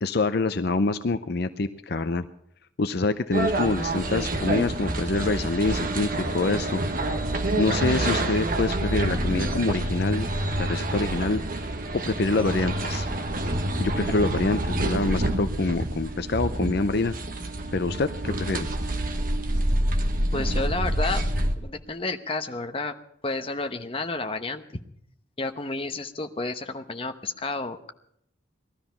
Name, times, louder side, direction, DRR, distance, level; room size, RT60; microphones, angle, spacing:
voice 1, 0.0-2.3 2.8-6.8 7.6-11.4 12.0-13.1 13.8-17.1 17.7-18.7, left 3 dB, 55° left, 10 dB, 0.6 m, -26 dB
sound 1, 3.3-21.6, right 1 dB, 45° right, 1.2 m, -27 dB
voice 2, 20.3-21.2 21.6-22.9 23.2-24.8 25.4-27.9, left 3 dB, 30° left, 6 dB, 0.9 m, -31 dB
19.0 x 13.0 x 5.7 m, 0.72 s
head